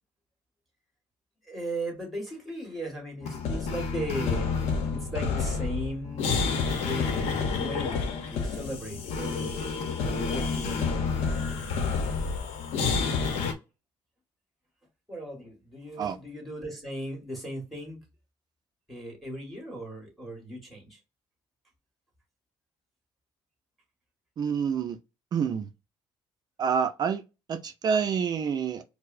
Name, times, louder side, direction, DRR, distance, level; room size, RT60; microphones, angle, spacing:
voice 1, 1.5-4.5 4.9-6.3 6.8-8.0 8.3-10.9 15.1-18.0 18.9-21.0, right 1 dB, ahead, 1.6 m, -37 dB
sound 1, 3.2-13.5, left 5 dB, 85° left, 0.8 m, -29 dB
voice 2, 24.4-25.0 25.3-25.7 26.6-27.2 27.5-28.8, right 7 dB, 40° right, 0.4 m, -27 dB
4.6 x 2.0 x 2.5 m
cardioid pair, 130°, 11 cm